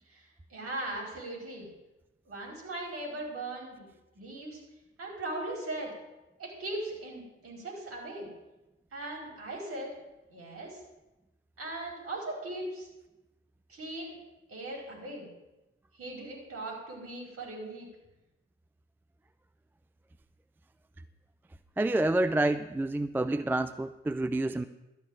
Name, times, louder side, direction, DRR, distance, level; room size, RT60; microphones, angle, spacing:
voice 1, 0.1-1.7 2.3-3.9 4.1-4.6 5.0-5.9 6.4-8.3 8.9-9.9 10.3-10.8 11.6-12.9 13.7-14.2 14.5-15.3 15.9-17.9, right 2 dB, 45° right, 0 dB, 4.7 m, -39 dB
voice 2, 21.8-24.7, right 2 dB, 5° right, 12 dB, 0.4 m, -28 dB
12.5 x 5.7 x 8.9 m, 1.0 s
figure-of-eight pair, 50°, 31 cm